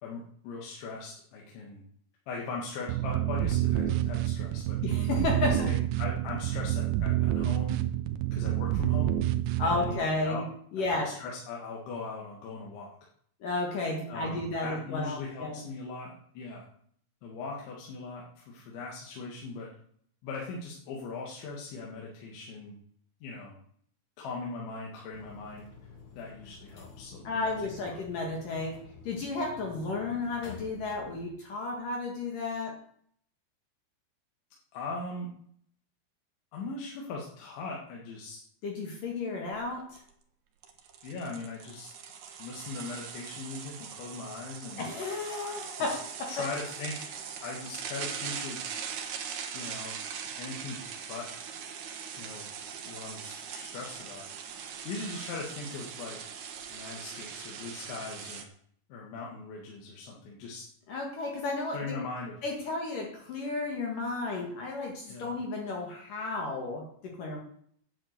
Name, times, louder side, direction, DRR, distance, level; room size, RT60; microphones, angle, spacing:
voice 1, 0.0-1.8 2.3-4.8 5.1-5.3 5.7-7.8 8.3-9.2 9.6-10.4 10.8-12.9 14.1-16.7 17.2-19.7 20.2-22.8 23.2-23.5 24.2-25.7 26.2-28.0 32.5-32.6 34.7-35.3 36.5-38.4 41.0-41.9 42.4-44.8 45.8-46.0 46.3-47.0 47.4-48.8 49.5-50.0 50.4-50.8 51.1-51.3 52.2-52.5 52.8-54.2 54.9-56.2 56.7-58.5 58.9-60.6 61.7-62.4 65.1-65.3, left 3 dB, 80° left, -2 dB, 4.2 m, -40 dB
sound 1, 2.9-9.9, right 13 dB, 85° right, 3.1 m, -28 dB
voice 2, 4.8-5.7 9.6-10.4 10.7-11.1 13.4-15.6 27.2-28.8 29.0-32.7 38.6-40.0 44.8-46.3 60.9-62.0 62.4-67.4, left 3 dB, 55° left, 0 dB, 3.1 m, -33 dB
sound 2, 25.1-31.3, left 5 dB, 35° left, 2.1 m, -50 dB
sound 3, 39.5-39.6 40.0-40.1 40.6-58.4, right 7 dB, 60° right, 2.1 m, -41 dB
9.9 x 9.4 x 8.1 m, 0.63 s
omnidirectional pair, 5.2 m